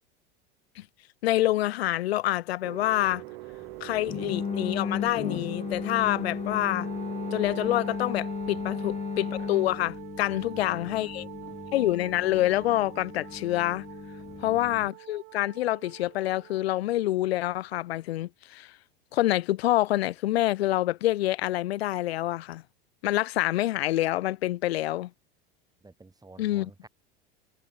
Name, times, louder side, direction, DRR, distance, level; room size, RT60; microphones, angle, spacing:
voice 1, 1.2-3.2 3.8-6.9 7.3-11.3 11.7-13.8 14.4-18.7 19.1-22.6 23.0-25.1 26.4-26.7, left 15 dB, 85° left, 0.5 m, -27 dB
sound 1, 2.6-8.0, right 23 dB, 65° right, 2.2 m, -42 dB
voice 2, 3.6-4.0 8.4-9.0 10.3-11.7 14.2-14.9 25.8-26.9, right 3 dB, 10° right, 7.7 m, -53 dB
sound 2, 4.1-14.9, left 7 dB, 20° left, 1.0 m, -36 dB
Wind instrument woodwind instrument, 6.7-16.7, right 21 dB, 50° right, 1.0 m, -44 dB
hypercardioid pair, 90°, 30 cm